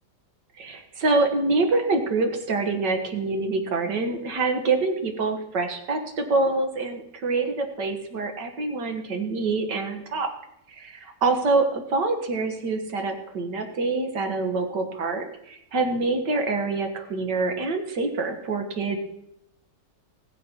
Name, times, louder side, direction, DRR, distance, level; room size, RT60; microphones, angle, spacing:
voice 1, 0.6-10.3 10.7-19.0, right 3 dB, 75° right, 5 dB, 2.3 m, -26 dB
20.0 x 7.4 x 4.6 m, 0.80 s
omnidirectional pair, 1.9 m